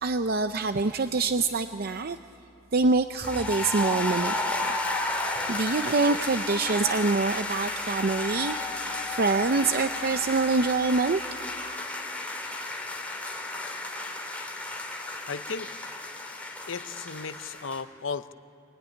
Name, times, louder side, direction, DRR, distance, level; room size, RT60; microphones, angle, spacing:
voice 1, 0.0-2.2 2.7-4.7 5.5-8.6 9.1-11.2, right 3 dB, 50° right, 9 dB, 0.6 m, -25 dB
sound 1, 3.2-17.8, left 2 dB, 5° left, 2.6 m, -33 dB
voice 2, 15.3-15.7 16.7-18.3, left 5 dB, 80° left, 11 dB, 0.8 m, -35 dB
24.5 x 20.0 x 9.9 m, 2.8 s
head